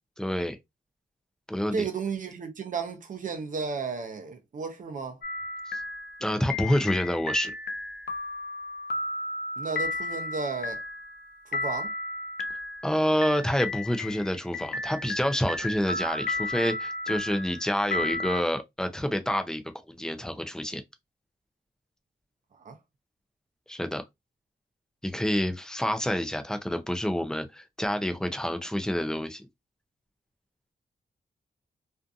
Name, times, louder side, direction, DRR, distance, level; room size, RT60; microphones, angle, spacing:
voice 1, 0.2-0.6 1.5-1.9 5.7-5.8 6.2-7.5 12.8-19.6 19.9-20.8 23.7-24.0 25.0-29.5, equal, 5° left, 0.4 m, -28 dB
voice 2, 1.7-5.2 9.6-10.8 11.5-11.9 22.6-22.8, right 5 dB, 50° right, 0.6 m, -33 dB
sound 1, 5.2-18.4, left 2 dB, 70° left, 0.5 m, -34 dB
2.5 x 2.5 x 2.3 m
wide cardioid pair, 165°, 18 cm